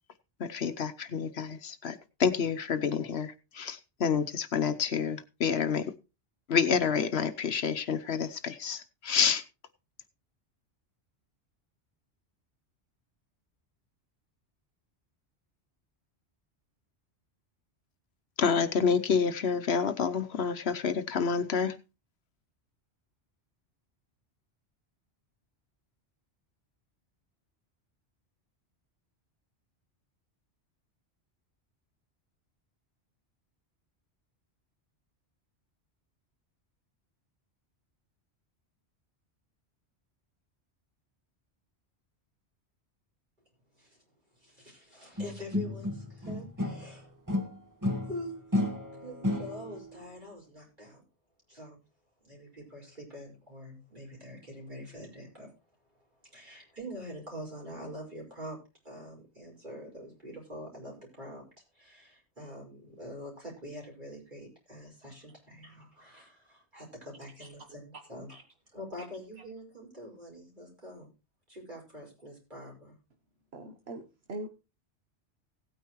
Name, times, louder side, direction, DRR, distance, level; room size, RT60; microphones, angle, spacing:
voice 1, 0.4-5.9 6.5-9.4 18.4-21.7, left 6 dB, 70° left, 1.1 m, -28 dB
voice 2, 44.4-47.1 48.1-48.7 49.0-51.0 51.5-51.8 52.2-55.5 56.3-58.6 58.8-61.4 61.7-68.4 68.7-71.1 71.5-73.0, equal, 45° right, 5.4 m, -45 dB
sound 1, 45.2-47.0 47.3-49.9, left 1 dB, 15° right, 1.4 m, -32 dB
voice 3, 73.5-74.0 74.3-74.5, right 2 dB, 65° right, 1.3 m, -40 dB
17.0 x 9.2 x 3.1 m
omnidirectional pair, 1.1 m